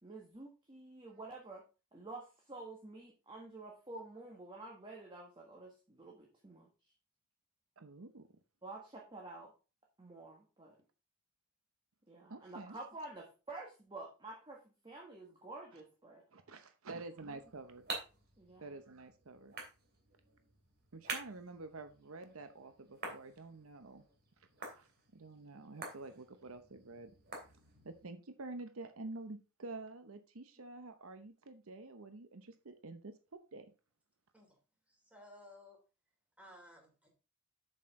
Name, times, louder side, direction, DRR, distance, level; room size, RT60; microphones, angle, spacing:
voice 1, 0.0-1.6 1.9-6.7 8.6-9.5 10.0-10.8 12.1-16.2 17.3-17.4 18.4-18.7, right 2 dB, 20° right, 0 dB, 1.4 m, -50 dB
voice 2, 7.8-8.3 12.3-12.8 15.7-15.8 16.3-17.9 18.6-19.5 20.9-24.0 24.6-27.1 27.8-33.1 33.5-33.7, right 3 dB, 70° right, 8 dB, 0.8 m, -49 dB
sound 1, 17.2-28.0, right 3 dB, 50° right, 2.7 m, -49 dB
voice 3, 34.9-35.8 36.4-37.1, left 1 dB, 5° right, 0 dB, 3.1 m, -57 dB
7.6 x 6.6 x 3.7 m, 0.33 s
head